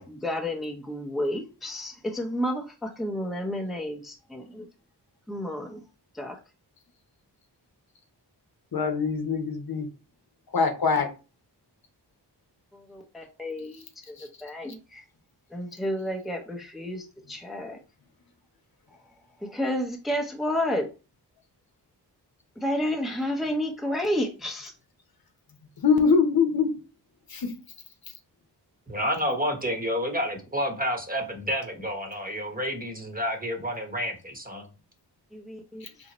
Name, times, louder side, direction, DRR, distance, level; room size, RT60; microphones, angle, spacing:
voice 1, 0.1-4.7 5.3-5.8 6.1-6.4 12.7-15.0 15.5-17.8 19.4-20.9 22.6-24.7 35.3-35.9, left 1 dB, ahead, 3 dB, 0.7 m, -31 dB
voice 2, 8.7-9.9 10.5-11.1 25.8-26.7 27.3-27.5, left 5 dB, 60° left, 4 dB, 0.9 m, -23 dB
voice 3, 28.9-34.7, equal, 20° right, 3 dB, 1.0 m, -29 dB
3.9 x 2.8 x 3.0 m, 0.32 s
cardioid pair, 55°, 41 cm